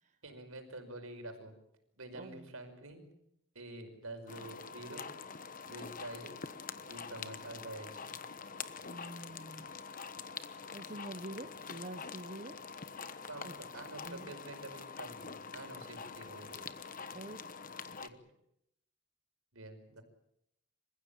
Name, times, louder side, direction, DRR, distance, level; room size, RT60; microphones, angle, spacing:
voice 1, 0.2-1.5 2.0-3.1 3.5-5.2 5.7-6.4 6.9-8.1 13.3-16.8 18.0-18.3 19.5-20.0, right 2 dB, 75° right, 6 dB, 5.5 m, -48 dB
voice 2, 2.1-2.5 8.8-9.7 10.7-12.6 13.4-13.5 14.0-14.3 17.1-17.4, right 1 dB, 35° right, 7 dB, 1.1 m, -46 dB
sound 1, 4.3-18.1, left 5 dB, 40° left, 1.1 m, -45 dB
28.0 x 15.5 x 9.0 m, 0.80 s
head